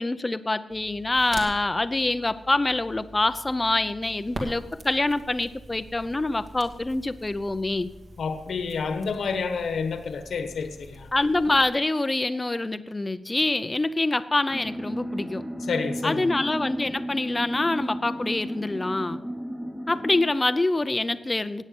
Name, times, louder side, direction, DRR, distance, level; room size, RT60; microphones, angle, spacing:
voice 1, 0.0-7.9 11.1-15.4 16.0-19.2 19.9-21.6, left 2 dB, 20° left, 0.6 m, -25 dB
Crackle, 0.7-11.7, right 1 dB, 50° right, 2.2 m, -44 dB
voice 2, 8.2-11.1 15.7-16.3, left 5 dB, 75° left, 1.4 m, -29 dB
sound 1, 14.5-20.3, equal, 5° right, 1.1 m, -34 dB
16.5 x 9.3 x 5.4 m
wide cardioid pair, 140°, 0 cm